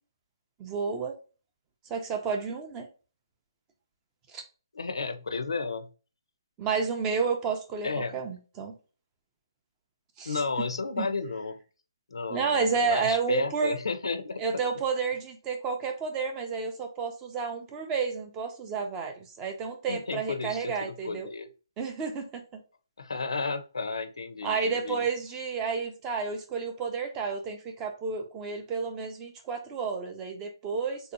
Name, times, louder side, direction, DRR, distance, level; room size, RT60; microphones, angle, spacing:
voice 1, 0.6-1.1 1.9-2.9 4.3-4.4 6.6-8.7 10.2-10.4 11.0-11.1 12.3-13.8 14.4-21.3 21.8-22.4 24.4-31.1, right 5 dB, 10° right, 4 dB, 0.4 m, -31 dB
voice 2, 4.7-5.9 7.8-8.2 10.2-11.6 12.1-14.4 19.9-21.5 23.0-25.0, left 4 dB, 85° left, 9 dB, 0.6 m, -33 dB
3.3 x 2.7 x 2.6 m, 0.35 s
hypercardioid pair, 170°, 3 cm